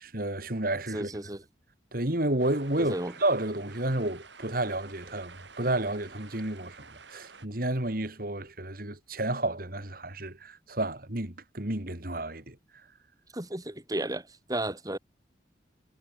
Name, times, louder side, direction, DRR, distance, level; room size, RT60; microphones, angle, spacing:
voice 1, 0.0-1.1 1.9-2.9 3.2-12.6, right 1 dB, 50° right, 3.2 m, -31 dB
voice 2, 0.9-1.4 2.8-3.1 13.3-15.0, right 1 dB, 20° right, 2.3 m, -33 dB
sound 1, 2.4-7.5, right 5 dB, 75° right, 7.3 m, -50 dB
head